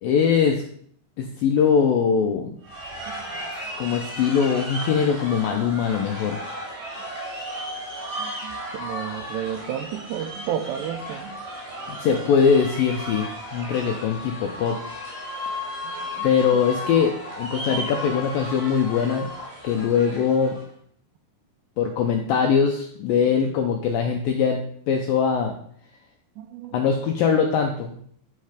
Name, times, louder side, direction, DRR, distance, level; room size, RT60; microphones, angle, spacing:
voice 1, 0.0-0.6 1.2-2.5 3.8-6.4 12.0-14.8 16.2-19.3 19.6-20.6 21.8-25.5 26.7-28.0, left 6 dB, 80° left, 3 dB, 2.1 m, -22 dB
sound 1, 2.6-20.7, equal, 60° right, 6.0 m, -35 dB
voice 2, 3.1-3.5 8.2-11.4 15.8-16.3 20.0-20.2 26.4-26.8, right 9 dB, 85° right, 8 dB, 2.8 m, -33 dB
13.0 x 5.6 x 5.1 m, 0.62 s
omnidirectional pair, 5.1 m